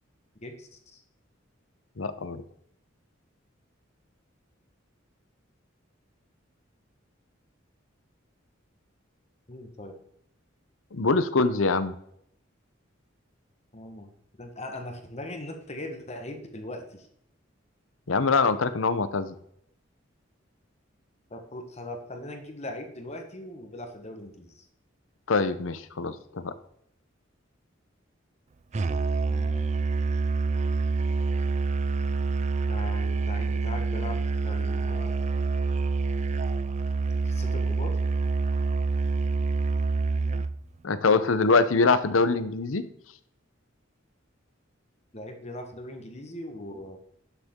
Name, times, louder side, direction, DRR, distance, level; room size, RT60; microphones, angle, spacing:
voice 1, 0.4-1.0 9.5-10.0 13.7-14.1 14.4-17.1 21.3-24.7 29.3-29.7 32.6-35.2 37.2-38.0 45.1-47.0, left 1 dB, 35° left, 5 dB, 1.4 m, -40 dB
voice 2, 2.0-2.4 10.9-12.0 18.1-19.4 25.3-26.5 40.8-42.9, left 4 dB, 85° left, 13 dB, 0.8 m, -24 dB
Musical instrument, 28.7-40.6, right 4 dB, 35° right, 0.4 m, -27 dB
11.5 x 6.8 x 3.7 m, 0.72 s
head